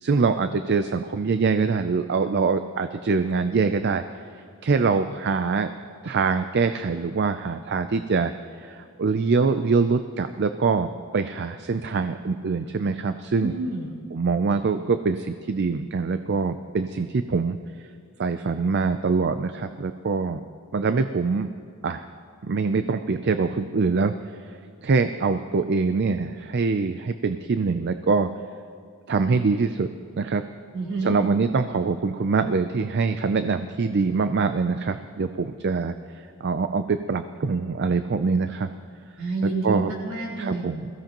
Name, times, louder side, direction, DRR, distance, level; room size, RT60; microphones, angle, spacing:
voice 1, 0.0-4.0 4.6-5.7 6.0-8.3 8.6-13.5 14.1-17.6 18.2-20.4 20.7-21.5 21.8-22.1 22.4-24.1 24.5-28.3 29.1-29.9 30.2-30.4 31.0-35.9 36.4-38.7 39.6-39.9 40.4-40.9, right 4 dB, 50° right, 9 dB, 0.4 m, -24 dB
voice 2, 13.4-13.9 30.7-31.1 39.2-40.7, right 3 dB, 70° right, -4 dB, 3.8 m, -28 dB
22.0 x 15.5 x 3.0 m, 2.4 s
head